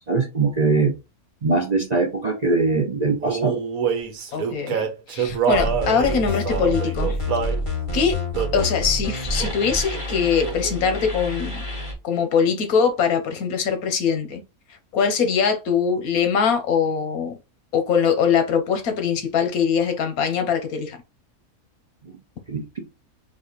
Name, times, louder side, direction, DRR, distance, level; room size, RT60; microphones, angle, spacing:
voice 1, 0.1-0.9 1.4-3.6 22.5-23.0, right 3 dB, 40° right, 0.6 m, -22 dB
Male singing, 3.2-7.6 8.3-8.8 9.4-9.7 9.9-10.9, right 7 dB, 75° right, 1.3 m, -26 dB
voice 2, 4.3-7.2 7.9-11.6 12.0-14.4 14.9-17.4 17.7-21.0, left 6 dB, 80° left, 1.3 m, -22 dB
sound 1, 5.5-11.9, left 1 dB, 25° left, 1.4 m, -28 dB
4.1 x 2.5 x 3.9 m
omnidirectional pair, 1.5 m